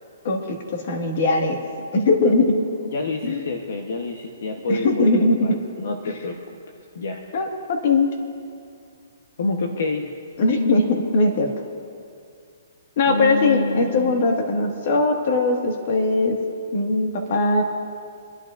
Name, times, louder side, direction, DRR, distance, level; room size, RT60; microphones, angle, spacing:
voice 1, 0.2-1.6 1.9-2.6 3.2-3.4 4.7-5.6 7.3-8.2 10.4-11.5 13.0-16.4 16.7-17.6, left 2 dB, 50° left, 2 dB, 1.8 m, -20 dB
voice 2, 2.8-6.4 6.9-7.2 9.4-10.1 13.1-14.2, left 2 dB, 70° left, 3 dB, 1.1 m, -27 dB
27.0 x 11.5 x 2.6 m, 2.4 s
hypercardioid pair, 155°, 0 cm